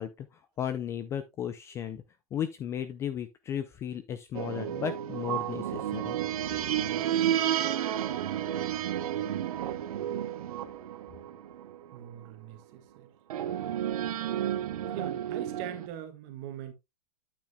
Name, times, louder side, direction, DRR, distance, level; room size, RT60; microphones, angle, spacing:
voice 1, 0.0-2.0 2.3-6.2, left 9 dB, 15° left, 0.3 m, -35 dB
sound 1, 4.3-12.2 13.3-15.9, right 11 dB, 70° right, 1.1 m, -31 dB
voice 2, 11.9-13.1 14.9-16.7, right 10 dB, 40° right, 1.7 m, -41 dB
9.0 x 8.4 x 2.2 m
supercardioid pair, 155°, 19 cm